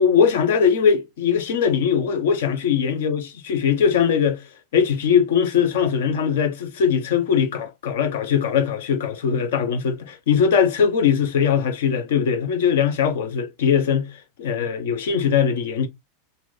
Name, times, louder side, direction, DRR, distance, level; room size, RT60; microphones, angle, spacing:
voice 1, 0.0-4.4 4.7-14.1 14.4-15.9, left 7 dB, 70° left, 0.9 m, -20 dB
3.0 x 2.7 x 4.0 m
hypercardioid pair, 95°, 0 cm